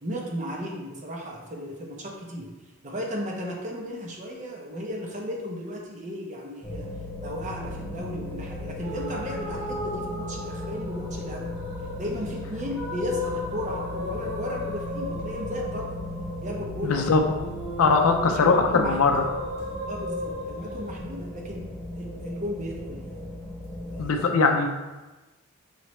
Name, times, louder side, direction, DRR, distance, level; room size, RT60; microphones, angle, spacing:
voice 1, 0.0-2.5 2.8-6.9 7.2-11.5 12.0-16.0 16.4-17.1 17.8-18.1 18.4-19.2 19.9-21.6 21.9-23.1 23.9-24.2, equal, 35° right, -1 dB, 0.7 m, -35 dB
sound 1, 6.6-24.0, left 1 dB, 10° left, 0.8 m, -37 dB
sound 2, 8.8-20.9, left 2 dB, 65° right, 1.5 m, -36 dB
voice 2, 16.8-17.2 17.8-19.2 24.0-24.7, left 4 dB, 70° left, 4 dB, 0.4 m, -21 dB
5.7 x 3.0 x 3.1 m, 1.2 s
head